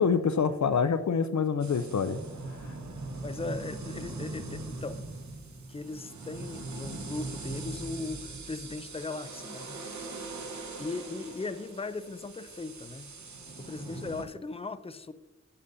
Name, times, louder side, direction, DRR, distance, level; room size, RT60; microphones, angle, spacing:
voice 1, 0.0-2.2 2.6-2.7, left 6 dB, 70° left, 11 dB, 0.5 m, -26 dB
sound 1, 1.6-14.2, right 3 dB, 70° right, 1.1 m, -41 dB
voice 2, 3.2-5.0 5.7-9.8 10.8-13.1 13.6-15.1, left 3 dB, 20° left, 13 dB, 0.5 m, -38 dB
13.0 x 8.1 x 2.6 m, 1.1 s
wide cardioid pair, 60°, 30 cm